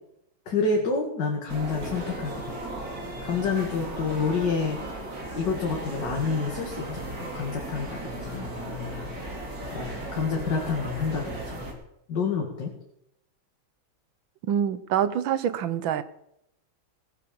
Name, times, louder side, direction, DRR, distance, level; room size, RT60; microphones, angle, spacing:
voice 1, 0.5-2.5 3.2-4.8 5.3-9.1 9.7-11.7 12.1-12.7, left 4 dB, 60° left, 0 dB, 2.6 m, -28 dB
sound 1, 1.5-11.7, right 2 dB, 45° right, 3.2 m, -36 dB
voice 2, 14.4-16.0, right 9 dB, 75° right, 14 dB, 1.5 m, -26 dB
18.5 x 8.5 x 7.0 m, 0.80 s
omnidirectional pair, 2.2 m